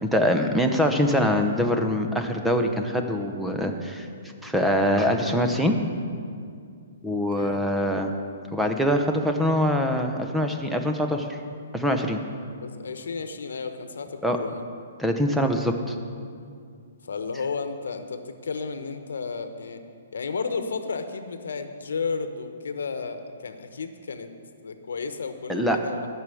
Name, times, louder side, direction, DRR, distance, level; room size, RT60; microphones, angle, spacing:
voice 1, 0.0-4.1 4.4-5.8 7.0-8.1 8.5-11.4 11.7-12.2 14.2-14.4 15.0-15.9 25.5-25.8, equal, ahead, 4 dB, 0.7 m, -24 dB
voice 2, 12.5-14.6 17.0-19.8 20.1-24.3 24.6-26.1, left 5 dB, 85° left, 8 dB, 1.0 m, -33 dB
11.0 x 6.2 x 8.5 m, 2.3 s
hypercardioid pair, 160°, 0 cm